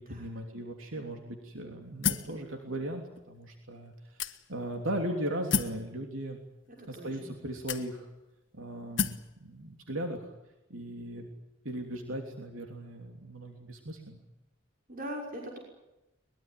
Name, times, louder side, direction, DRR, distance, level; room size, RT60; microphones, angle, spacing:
voice 1, 0.0-6.4 6.9-8.1 8.5-10.3 10.7-11.3 11.6-14.2, right 1 dB, 85° right, 2 dB, 3.2 m, -38 dB
sound 1, 2.0-2.4 3.2-3.3 4.2-4.7 5.5-5.8 6.8-6.9 7.7-8.2 9.0-9.3, left 6 dB, 70° left, 1.5 m, -31 dB
voice 2, 6.8-7.3 14.9-15.6, equal, 45° right, -1 dB, 6.3 m, -41 dB
23.0 x 22.0 x 9.4 m, 0.94 s
head